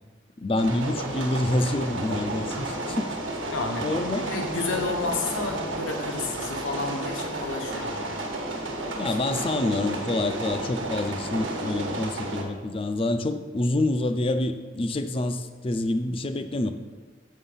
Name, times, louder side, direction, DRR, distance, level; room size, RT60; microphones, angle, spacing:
voice 1, 0.4-3.2 3.8-4.3 9.0-16.7, left 2 dB, 30° left, 9 dB, 0.4 m, -27 dB
sound 1, 0.6-12.4, right 2 dB, 80° right, 1.3 m, -32 dB
voice 2, 3.5-8.2 9.0-9.4, left 3 dB, 85° left, 3 dB, 1.1 m, -31 dB
7.0 x 5.6 x 5.5 m, 1.3 s
head